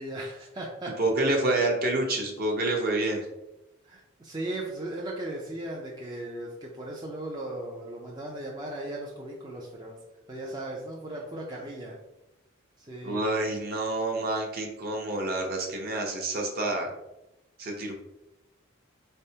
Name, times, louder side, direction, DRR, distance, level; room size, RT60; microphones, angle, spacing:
voice 1, 0.0-0.9 3.8-10.0 10.3-11.9 12.9-13.2, right 1 dB, 20° right, -3 dB, 0.5 m, -37 dB
voice 2, 1.0-3.3 13.0-16.9 17.6-17.9, right 2 dB, 45° right, 1 dB, 0.8 m, -28 dB
4.2 x 3.4 x 2.8 m, 0.94 s
head